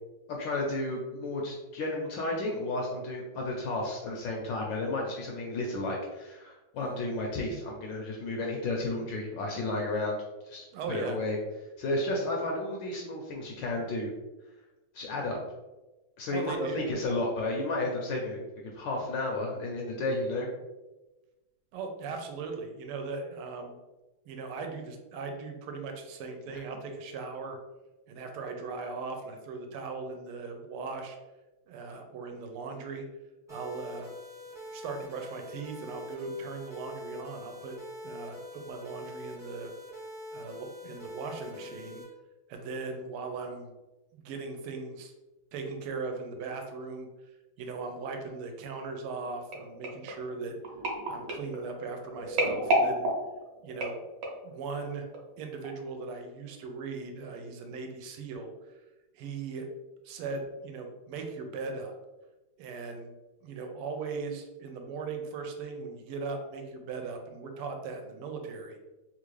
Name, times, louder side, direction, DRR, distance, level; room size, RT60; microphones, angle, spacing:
voice 1, 0.3-11.4 11.8-14.1 14.9-15.4 16.2-18.5 18.7-20.5, left 2 dB, 75° left, -1 dB, 1.1 m, -32 dB
voice 2, 10.7-11.2 16.3-16.8 21.7-23.8 24.3-27.6 28.1-31.2 31.7-33.0 33.5-34.1 34.7-37.8 38.0-39.7 40.3-42.0 42.5-43.7 44.1-45.1 45.5-47.1 47.6-50.5 51.1-53.1 53.6-54.0 54.4-55.1 55.4-58.8 59.1-59.7 60.0-61.9 62.6-63.1 63.4-68.8, right 4 dB, 80° right, 4 dB, 1.5 m, -38 dB
sound 1, 33.5-42.0, left 1 dB, 5° right, 0.4 m, -44 dB
sound 2, 49.5-54.5 55.1-55.4 55.6-55.7, right 1 dB, 65° right, 1.3 m, -32 dB
3.6 x 2.4 x 3.1 m, 1.1 s
omnidirectional pair, 2.4 m